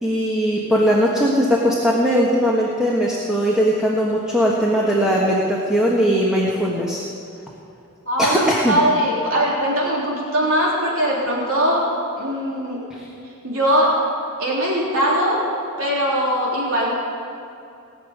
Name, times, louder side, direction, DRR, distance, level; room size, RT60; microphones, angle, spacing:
voice 1, 0.0-7.0 8.2-8.8 12.9-13.0, equal, 5° right, -4 dB, 1.4 m, -19 dB
voice 2, 8.1-8.4 8.7-11.8 12.2-12.8 13.4-13.9 14.4-15.4 15.8-16.9, equal, 65° right, -5 dB, 3.5 m, -20 dB
19.0 x 7.2 x 9.5 m, 2.5 s
head